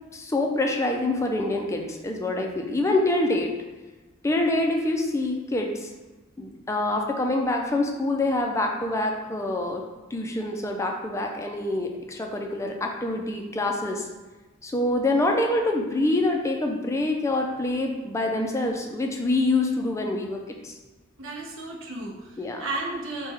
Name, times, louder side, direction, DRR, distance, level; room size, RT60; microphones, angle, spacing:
voice 1, 0.1-3.5 4.2-5.9 6.4-9.8 10.1-14.1 14.6-20.7 22.4-22.7, left 2 dB, 15° left, 2 dB, 0.3 m, -26 dB
voice 2, 21.2-23.3, right 2 dB, 65° right, 0 dB, 0.7 m, -34 dB
4.6 x 2.2 x 3.3 m, 1.2 s
head